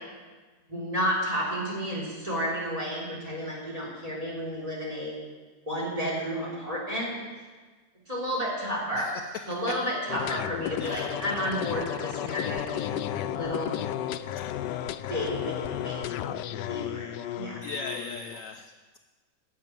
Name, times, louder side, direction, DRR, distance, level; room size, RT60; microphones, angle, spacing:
voice 1, 0.7-5.1 5.7-7.1 7.4-7.5 8.1-9.1 9.5-13.0 13.3-13.7 15.1-16.3 16.7-17.1 17.4-17.6, equal, 20° right, -4 dB, 3.6 m, -31 dB
sound 1, 10.1-18.4, left 12 dB, 90° left, 1.2 m, -33 dB
voice 2, 10.8-11.2 17.6-19.0, left 4 dB, 65° left, 8 dB, 0.8 m, -38 dB
11.0 x 7.5 x 9.0 m, 1.4 s
omnidirectional pair, 1.8 m